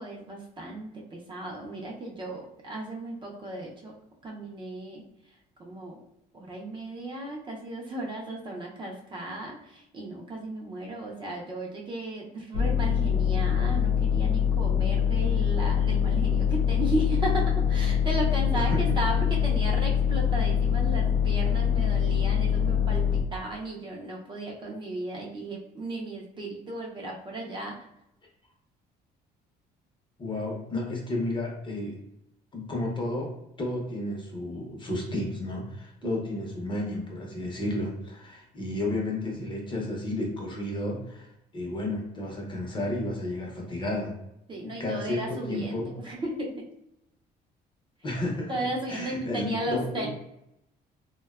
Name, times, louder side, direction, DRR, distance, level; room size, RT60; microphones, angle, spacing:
voice 1, 0.0-3.9 4.2-5.0 5.6-6.0 6.3-27.8 36.0-36.7 44.5-46.7 48.5-50.1, right 1 dB, 30° right, -1 dB, 0.5 m, -35 dB
sound 1, 12.5-23.2, left 8 dB, 70° left, 0.4 m, -24 dB
voice 2, 18.5-19.0 30.2-32.0 32.5-41.3 41.5-44.1 44.6-45.9 48.0-48.5 48.9-50.1, left 1 dB, 30° left, -1 dB, 0.7 m, -32 dB
2.6 x 2.2 x 2.3 m, 0.83 s
cardioid pair, 110°, 17 cm